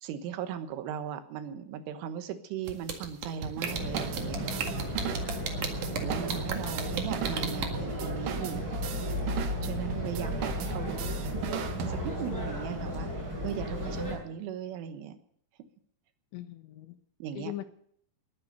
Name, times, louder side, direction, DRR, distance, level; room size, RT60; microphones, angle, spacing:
voice 1, 0.0-4.6 6.0-8.7 9.6-15.2 17.2-17.6, right 9 dB, 85° right, 9 dB, 3.8 m, -38 dB
sound 1, 2.7-7.7, right 7 dB, 55° right, 2.6 m, -33 dB
sound 2, 3.4-12.4, right 8 dB, 70° right, 2.0 m, -38 dB
sound 3, 3.6-14.2, equal, 20° right, 7.2 m, -34 dB
voice 2, 5.2-5.8 16.3-17.0 17.4-17.6, left 14 dB, 75° left, 9 dB, 3.4 m, -41 dB
20.5 x 9.5 x 6.7 m, 0.65 s
omnidirectional pair, 5.6 m